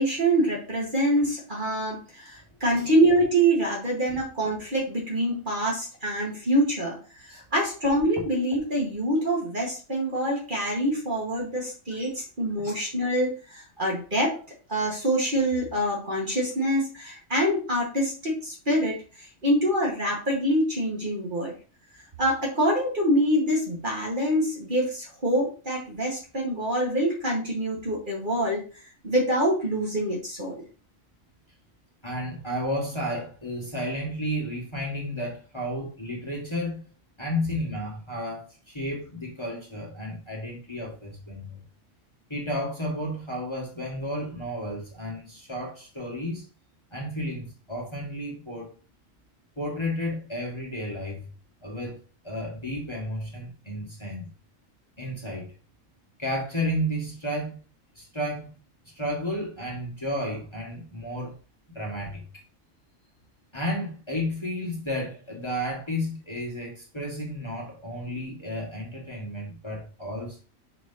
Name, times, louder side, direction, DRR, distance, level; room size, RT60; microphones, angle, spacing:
voice 1, 0.0-14.4 14.7-21.5 22.2-28.6 29.0-30.6, right 1 dB, 40° right, -2 dB, 1.8 m, -25 dB
voice 2, 32.0-36.9 37.2-41.6 42.3-46.4 46.9-48.7 49.6-51.3 51.6-51.9 52.2-54.3 55.0-55.5 56.2-57.6 58.0-58.5 59.0-61.3 61.8-62.2 63.5-70.4, equal, 20° left, -3 dB, 1.8 m, -32 dB
6.0 x 5.8 x 2.8 m, 0.35 s
omnidirectional pair, 1.4 m